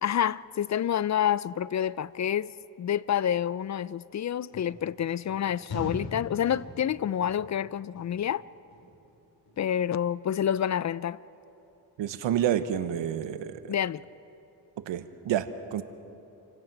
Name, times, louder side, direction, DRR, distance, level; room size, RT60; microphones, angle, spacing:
voice 1, 0.0-2.5 2.8-8.4 9.6-11.2 13.7-14.0, left 9 dB, 40° left, 0.4 m, -28 dB
sound 1, 4.5-4.7 5.2-5.4 5.7-6.1 6.4-6.9 7.2-7.6 7.9-8.3 8.7-9.1 9.5-9.6, left 1 dB, 65° left, 6.7 m, -39 dB
voice 2, 12.0-13.7 14.9-15.8, right 10 dB, 85° right, 1.1 m, -29 dB
28.5 x 17.0 x 6.0 m
cardioid pair, 75°, 43 cm